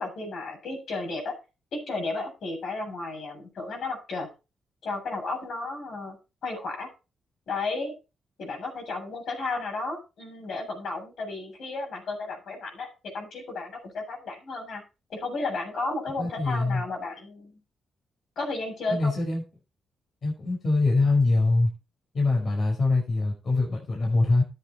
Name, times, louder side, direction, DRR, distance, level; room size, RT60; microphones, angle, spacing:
voice 1, 0.0-1.3 1.7-4.3 4.8-6.2 6.4-6.9 7.5-7.9 8.4-12.9 13.1-14.8 15.1-17.6 18.4-19.2, left 3 dB, 70° left, 2 dB, 7.6 m, -33 dB
voice 2, 16.2-16.8 18.9-19.4 20.2-21.7 22.1-24.4, left 3 dB, 55° left, 0 dB, 5.3 m, -23 dB
13.5 x 8.4 x 4.3 m, 0.30 s
cardioid pair, 70°, 0 cm